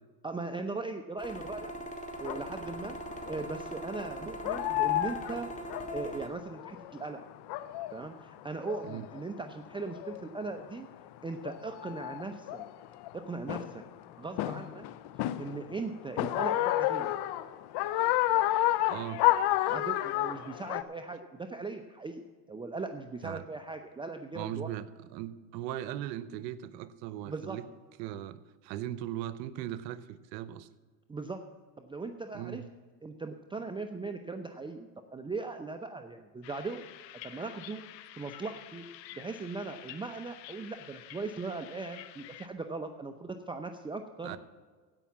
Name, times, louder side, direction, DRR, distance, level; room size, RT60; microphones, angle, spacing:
voice 1, 0.2-1.7 2.2-3.0 3.3-5.5 5.9-7.2 7.9-10.9 11.2-12.6 13.1-13.8 14.2-14.8 15.4-17.1 19.7-24.7 27.3-27.6 31.1-31.4 31.8-32.6 33.0-36.9 37.2-37.8 38.2-38.9 39.1-44.4, right 3 dB, 10° right, 6 dB, 0.6 m, -39 dB
sound 1, 1.2-6.3, right 1 dB, 15° left, 1.8 m, -41 dB
sound 2, 2.2-2.4 3.2-3.6 4.0-4.1 4.4-7.0 7.3-8.0 8.4-9.2 9.9-10.3 11.1-11.2 11.4-13.1 13.5-13.9 14.4-15.8 16.2-20.8, left 15 dB, 55° left, 0.8 m, -30 dB
voice 2, 18.9-19.2 23.2-23.4 24.3-27.6 28.0-30.7 32.3-32.7 44.2-44.4, right 12 dB, 80° right, 15 dB, 0.9 m, -39 dB
sound 3, 36.4-42.5, left 13 dB, 85° left, 0.9 m, -49 dB
16.0 x 5.7 x 7.1 m, 1.5 s
supercardioid pair, 95°, 49 cm